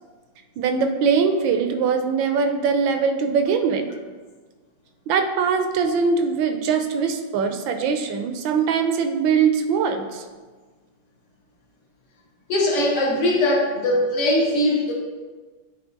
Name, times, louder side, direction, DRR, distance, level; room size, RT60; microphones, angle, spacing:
voice 1, 0.6-3.8 5.1-10.2, right 5 dB, 80° right, 7 dB, 1.3 m, -22 dB
voice 2, 12.5-14.9, left 1 dB, 50° left, -1 dB, 1.1 m, -20 dB
8.6 x 3.1 x 3.9 m, 1.4 s
omnidirectional pair, 2.1 m